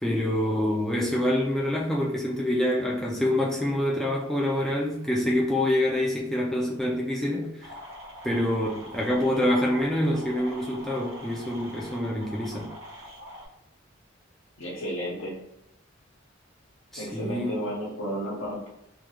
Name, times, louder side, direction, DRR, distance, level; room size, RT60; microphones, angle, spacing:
voice 1, 0.0-7.7 8.2-12.7 16.9-17.6, left 1 dB, ahead, -4 dB, 0.3 m, -26 dB
sound 1, 7.6-13.5, equal, 85° right, 0.8 m, -43 dB
voice 2, 14.6-15.3 17.0-18.7, equal, 80° left, -5 dB, 0.9 m, -32 dB
2.7 x 2.5 x 2.8 m, 0.82 s
head